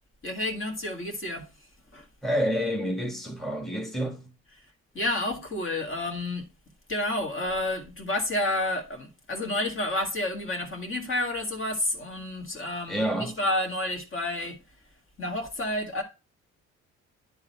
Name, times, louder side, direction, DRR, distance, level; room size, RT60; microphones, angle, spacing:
voice 1, 0.2-1.5 1.9-2.1 4.5-4.6 4.9-6.5 6.9-14.6 15.2-16.0, left 1 dB, 45° left, 1.9 m, -30 dB
voice 2, 2.2-4.3 12.9-13.4, equal, ahead, 1.3 m, -28 dB
9.9 x 3.7 x 4.4 m
cardioid pair, 90°, 30 cm